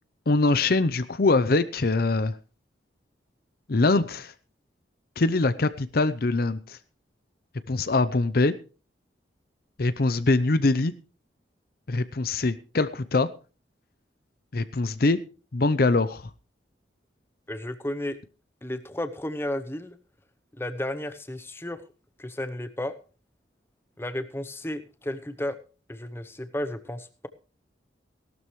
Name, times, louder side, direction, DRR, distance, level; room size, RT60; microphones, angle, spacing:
voice 1, 0.3-2.3 3.7-4.3 5.2-6.8 7.7-8.5 9.8-10.9 11.9-13.3 14.5-15.2 15.5-16.3, left 3 dB, 55° left, 14 dB, 0.6 m, -23 dB
voice 2, 17.5-18.2 18.6-20.0 20.6-21.8 22.2-22.9 24.0-25.6 25.9-27.3, left 1 dB, 15° left, 10 dB, 0.8 m, -33 dB
17.5 x 12.5 x 3.2 m, 0.35 s
head